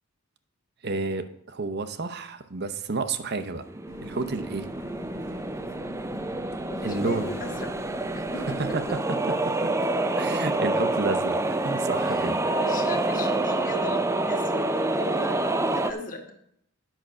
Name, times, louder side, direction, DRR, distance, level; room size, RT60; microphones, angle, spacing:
voice 1, 0.8-3.7 4.0-4.7 6.8-7.3 8.7-8.8 9.4-9.7 10.1-12.4, right 3 dB, 50° right, 11 dB, 0.7 m, -30 dB
sound 1, 3.5-15.9, right 2 dB, 15° right, 0.4 m, -27 dB
Bus, 3.9-8.9, left 5 dB, 85° left, 0.9 m, -46 dB
voice 2, 6.7-7.7 8.1-9.0 12.0-16.2, left 2 dB, 40° left, 4 dB, 1.3 m, -37 dB
9.1 x 5.8 x 6.1 m, 0.70 s
head